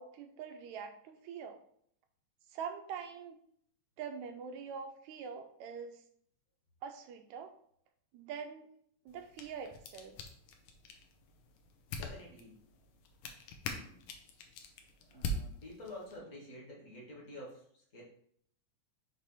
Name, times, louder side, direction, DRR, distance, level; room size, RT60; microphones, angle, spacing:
voice 1, 0.0-1.6 2.5-3.4 4.0-6.0 6.8-7.5 8.1-8.7 9.1-10.2, right 6 dB, 80° right, 6 dB, 1.9 m, -44 dB
sound 1, 9.1-16.2, left 1 dB, 80° left, 2.0 m, -44 dB
voice 2, 11.9-12.6 13.7-14.0 15.1-18.0, left 1 dB, 35° left, -3 dB, 1.3 m, -50 dB
6.5 x 2.9 x 5.5 m, 0.65 s
omnidirectional pair, 3.5 m